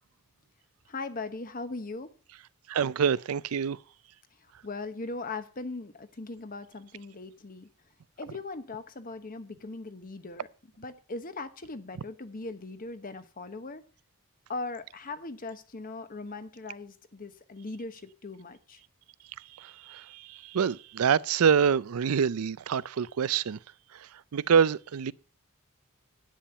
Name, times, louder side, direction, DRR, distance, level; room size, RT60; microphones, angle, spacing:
voice 1, 0.9-2.1 4.6-7.7 8.2-10.5 10.8-13.8 14.5-18.8, left 3 dB, 40° left, 1.0 m, -39 dB
voice 2, 2.7-3.8 19.4-23.6 23.9-25.1, right 7 dB, 90° right, 0.4 m, -26 dB
10.5 x 8.7 x 5.5 m
head